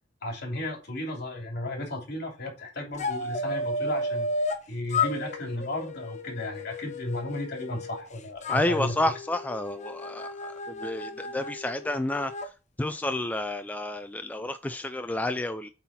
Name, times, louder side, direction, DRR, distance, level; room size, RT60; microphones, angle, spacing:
voice 1, 0.2-4.3 4.7-9.0, left 1 dB, 60° left, 2.9 m, -34 dB
sound 1, 3.0-4.6 4.9-8.0 8.4-12.5, left 2 dB, 40° left, 0.8 m, -33 dB
voice 2, 8.5-10.5 10.8-12.3 12.8-15.7, left 1 dB, 10° left, 0.3 m, -30 dB
8.2 x 4.0 x 4.2 m
head